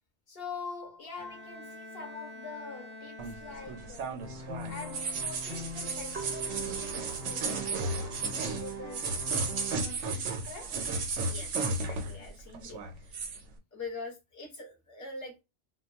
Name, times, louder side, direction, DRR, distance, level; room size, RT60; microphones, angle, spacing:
voice 1, 0.3-4.2 4.7-9.2 9.7-10.9, left 4 dB, 60° left, 0.8 m, -45 dB
Bowed string instrument, 1.2-4.4, left 1 dB, 35° right, 0.4 m, -47 dB
sound 1, 3.2-12.3 12.5-13.4, right 3 dB, 85° right, 1.0 m, -34 dB
sound 2, 4.2-9.8, right 2 dB, 55° right, 0.8 m, -41 dB
voice 2, 11.3-13.1 13.7-15.4, left 3 dB, 20° left, 0.7 m, -43 dB
2.2 x 2.2 x 3.2 m
omnidirectional pair, 1.2 m